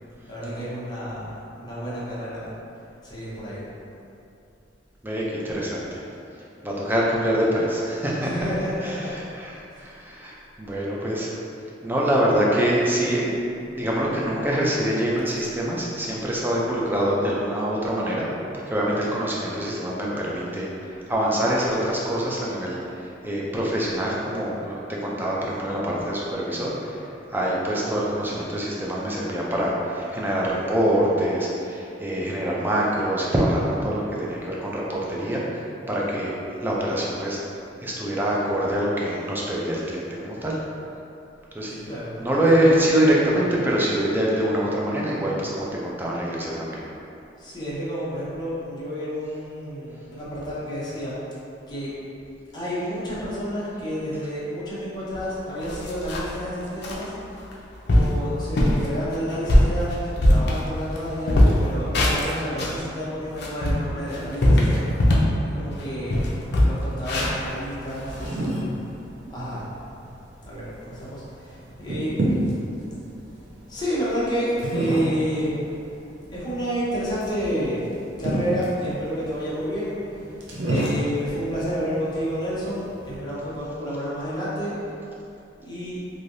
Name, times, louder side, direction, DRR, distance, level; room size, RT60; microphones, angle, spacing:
voice 1, 0.3-2.5 3.0-3.7 8.2-9.1 9.7-9.8 27.7-27.9 28.2-28.5 41.8-42.5 43.2-43.5 47.4-51.1 51.7-51.9 52.5-57.1 57.8-65.3 65.5-66.2 66.6-68.2 69.3-69.6 70.4-72.1 73.7-75.7 76.3-77.9 78.2-84.8 85.6-86.0, equal, 25° left, -9 dB, 0.8 m, -30 dB
voice 2, 5.0-6.0 6.6-8.5 8.8-11.3 11.8-13.3 13.7-18.3 18.5-20.7 21.1-24.8 25.0-27.0 27.3-35.4 35.9-36.3 36.6-37.4 37.8-40.6 41.5-41.8 42.2-46.8, right 1 dB, 10° right, -5 dB, 0.4 m, -24 dB
sound 1, 55.2-55.3 55.6-56.4 56.8-57.0 57.5-57.6 57.9-58.2 58.6-58.9 59.3-61.0 61.3-62.8 63.2-65.4 65.7-65.8 66.1-68.3, left 1 dB, 60° left, 0.5 m, -20 dB
sound 2, 67.4-83.2, right 1 dB, 65° right, 0.6 m, -32 dB
3.2 x 2.7 x 2.6 m, 2.7 s
head